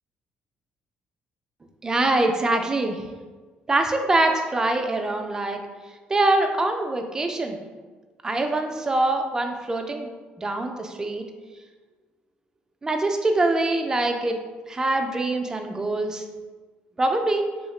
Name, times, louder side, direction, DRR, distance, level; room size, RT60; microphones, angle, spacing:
voice 1, 1.8-3.0 3.7-5.6 6.1-7.6 8.2-10.1 10.4-11.2 12.8-14.4 14.7-16.2 17.0-17.5, right 2 dB, 20° right, 4 dB, 0.3 m, -24 dB
3.0 x 2.7 x 3.1 m, 1.4 s
cardioid pair, 120°, 3 cm